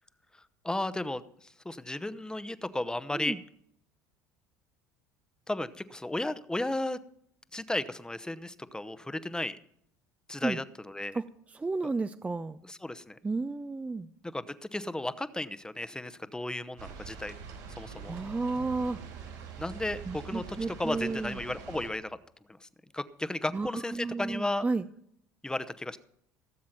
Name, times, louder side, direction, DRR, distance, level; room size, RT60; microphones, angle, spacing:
voice 1, 0.6-3.4 5.5-7.0 7.5-9.6 10.3-11.2 11.8-11.9 12.6-13.2 14.2-17.3 17.8-18.1 19.6-22.2 22.6-22.7 22.9-24.6 25.4-26.0, left 1 dB, 10° left, 13 dB, 0.8 m, -34 dB
voice 2, 11.5-12.6 13.2-14.1 18.1-19.5 20.1-21.4 23.5-24.8, right 3 dB, 15° right, 12 dB, 0.5 m, -33 dB
sound 1, 16.8-21.9, right 5 dB, 85° right, 4.1 m, -44 dB
17.0 x 7.4 x 5.9 m, 0.72 s
hypercardioid pair, 75°, 9 cm